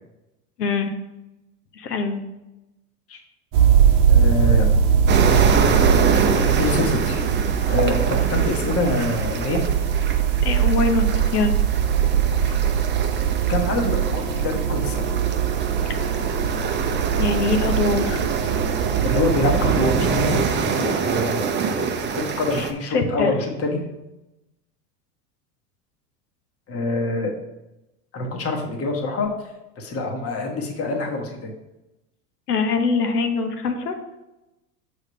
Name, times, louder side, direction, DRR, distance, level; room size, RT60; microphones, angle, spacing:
voice 1, 0.6-0.9 1.7-2.2 5.2-5.3 10.4-11.0 11.3-11.5 17.2-18.2 22.5-23.3 32.5-34.0, left 4 dB, 80° left, 6 dB, 0.9 m, -23 dB
sound 1, 3.5-20.4, right 8 dB, 45° right, 0.9 m, -21 dB
voice 2, 4.1-4.7 6.1-7.3 7.6-9.6 12.4-12.6 13.5-15.0 19.0-23.8 26.7-27.3 28.1-29.3 29.8-31.5, left 2 dB, 30° left, 1 dB, 1.3 m, -26 dB
sound 2, 5.1-22.7, right 6 dB, 25° right, 0.6 m, -26 dB
6.4 x 3.5 x 5.2 m, 0.98 s
hypercardioid pair, 85°, 46 cm